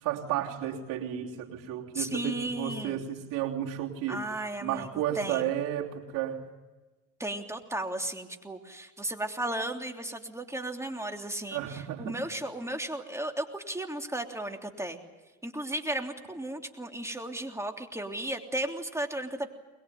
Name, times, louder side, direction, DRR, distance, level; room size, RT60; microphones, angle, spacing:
voice 1, 0.0-4.2 4.6-6.4 11.5-12.2, right 11 dB, 85° right, 0 dB, 3.2 m, -32 dB
voice 2, 1.9-3.0 4.1-4.9 5.2-5.4 7.2-15.0 15.4-19.5, right 1 dB, 10° right, 4 dB, 3.2 m, -35 dB
22.5 x 22.5 x 9.4 m, 1.2 s
cardioid pair, 85°, 32 cm